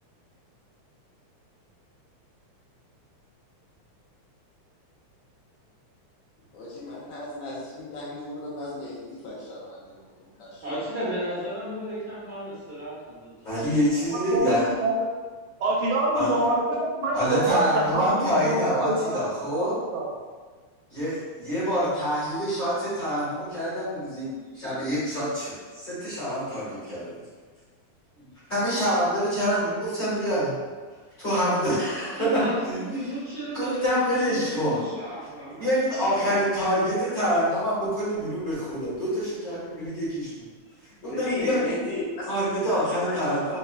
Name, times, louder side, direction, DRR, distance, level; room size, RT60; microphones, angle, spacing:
voice 1, 6.5-10.6 41.1-42.3 43.0-43.3, left 1 dB, 80° left, -6 dB, 1.9 m, -35 dB
voice 2, 10.6-13.5 31.9-35.7 35.9-36.5, right 1 dB, 65° right, -13 dB, 0.9 m, -34 dB
voice 3, 13.4-14.7 16.1-16.3 17.1-19.7 20.9-24.3 24.5-27.1 28.2-28.3 28.5-30.5 31.2-32.8 33.5-34.8 35.6-40.3 41.0-41.8 42.3-43.6, equal, 55° left, -11 dB, 1.0 m, -26 dB
voice 4, 14.1-15.0 15.6-19.2 19.5-20.1, right 2 dB, 90° right, -4 dB, 2.1 m, -26 dB
4.9 x 2.1 x 2.4 m, 1.4 s
omnidirectional pair, 3.4 m